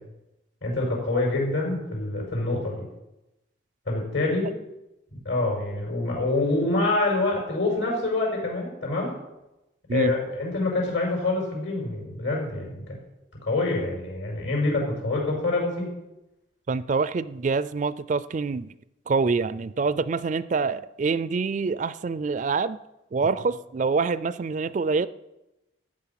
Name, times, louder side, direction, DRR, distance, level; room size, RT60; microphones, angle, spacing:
voice 1, 0.6-2.8 3.9-4.5 5.2-9.1 9.9-13.0 13.4-15.9, left 2 dB, 75° left, -1 dB, 5.8 m, -26 dB
voice 2, 16.7-18.7 19.1-22.8 23.1-25.1, right 4 dB, 40° right, 16 dB, 0.4 m, -26 dB
14.0 x 9.0 x 5.8 m, 0.95 s
head